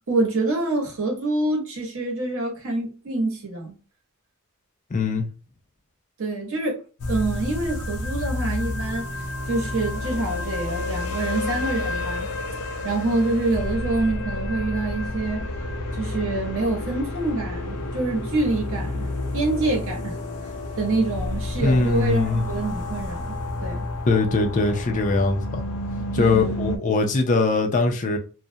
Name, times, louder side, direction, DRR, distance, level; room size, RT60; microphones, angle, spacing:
voice 1, 0.1-3.7 6.2-6.8 7.1-15.5 15.9-20.2 20.8-23.9 26.1-26.7, right 2 dB, 65° right, 0.9 m, -26 dB
voice 2, 4.9-5.3 21.6-22.4 24.1-25.6 26.1-28.2, left 3 dB, 35° left, 0.4 m, -21 dB
sound 1, 7.0-26.8, left 2 dB, 85° left, 0.5 m, -30 dB
2.3 x 2.0 x 2.7 m
head